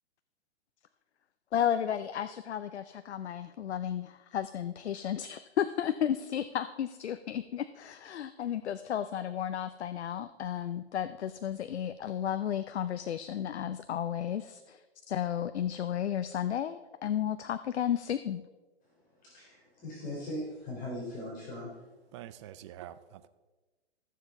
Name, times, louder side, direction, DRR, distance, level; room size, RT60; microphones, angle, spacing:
voice 1, 1.5-14.8 15.1-18.4, left 9 dB, 80° left, 12 dB, 0.6 m, -33 dB
voice 2, 19.2-21.8, left 1 dB, 25° left, -5 dB, 3.5 m, -39 dB
voice 3, 22.1-23.3, right 12 dB, 25° right, 13 dB, 0.4 m, -46 dB
14.0 x 7.4 x 4.0 m, 1.2 s
hypercardioid pair, 130°, 33 cm